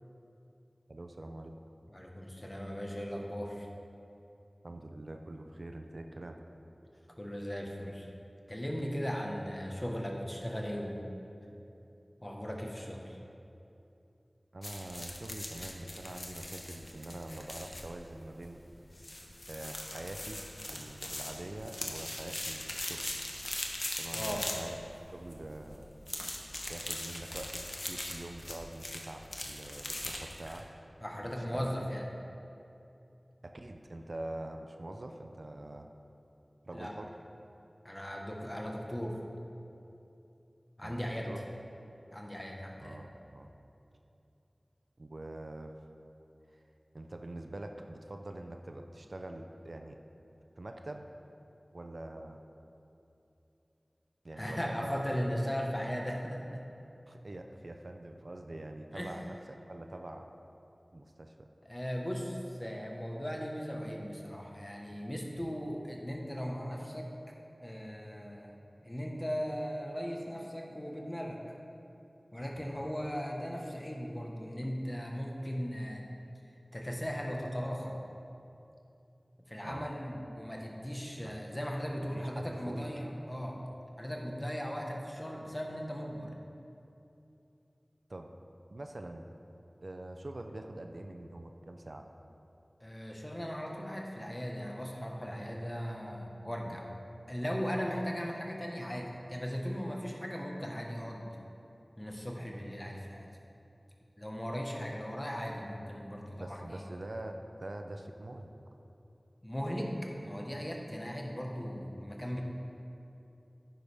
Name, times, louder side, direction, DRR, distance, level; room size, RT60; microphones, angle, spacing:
voice 1, 0.9-1.5 4.6-6.4 14.5-18.6 19.5-20.4 20.7-23.1 24.0-24.8 25.1-25.8 26.7-30.7 31.5-31.7 33.4-35.9 36.6-37.1 40.8-41.5 42.8-43.5 45.0-45.7 46.5-46.6 46.9-50.0 50.6-51.0 51.7-52.4 54.2-55.0 57.1-60.3 60.9-61.5 65.4-65.5 72.6-72.7 79.6-80.2 81.2-81.4 82.1-82.9 88.1-88.3 88.7-89.3 89.8-92.1 96.6-96.8 106.4-108.5, right 1 dB, 70° right, 4 dB, 0.6 m, -44 dB
voice 2, 1.9-3.7 7.2-8.1 8.5-11.1 12.2-13.2 24.1-24.5 31.0-32.1 36.7-36.9 37.8-39.2 40.8-41.3 42.1-43.0 54.4-56.6 58.9-59.1 61.6-67.1 67.6-68.5 68.8-71.4 72.3-76.1 76.7-77.9 79.5-83.6 84.0-86.3 92.8-96.9 97.3-101.4 102.0-103.3 104.2-106.8 109.4-112.4, equal, 20° left, 0 dB, 1.4 m, -38 dB
sound 1, 14.6-30.6, left 1 dB, 45° left, 1.2 m, -41 dB
11.0 x 9.7 x 3.6 m, 2.8 s
wide cardioid pair, 45°, 0 cm